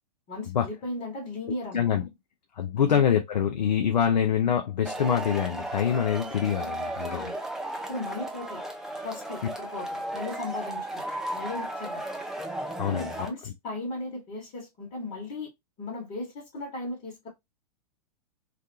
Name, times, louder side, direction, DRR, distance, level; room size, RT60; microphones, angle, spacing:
voice 1, 0.3-1.9 2.9-3.0 7.0-7.4 7.9-8.6 9.0-9.9 10.1-11.0 11.3-12.0 12.9-15.5 15.8-17.3, left 2 dB, 35° left, 1.2 m, -36 dB
voice 2, 2.6-7.3 12.8-13.3, left 8 dB, 80° left, 0.5 m, -25 dB
Male speech man speaking / Shout / Clapping, 4.9-13.3, right 1 dB, ahead, 0.3 m, -35 dB
2.5 x 2.3 x 2.6 m
figure-of-eight pair, 105°, 21 cm